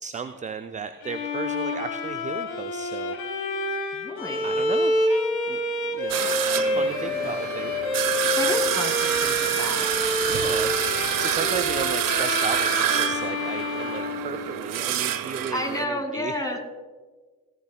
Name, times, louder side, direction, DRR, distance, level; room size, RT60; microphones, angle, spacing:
voice 1, 0.0-3.4 4.4-5.1 5.5-5.6 5.9-7.8 10.3-16.3, right 6 dB, 15° right, 10 dB, 0.4 m, -35 dB
Bowed string instrument, 1.0-14.9, left 2 dB, 50° left, 2.2 m, -28 dB
voice 2, 3.9-4.6 6.6-7.4 8.3-9.9 15.5-16.6, left 1 dB, 10° left, 4 dB, 2.4 m, -32 dB
sound 1, 6.1-15.8, right 10 dB, 45° right, 0.9 m, -27 dB
18.0 x 12.5 x 2.3 m, 1.4 s
figure-of-eight pair, 45°, 46 cm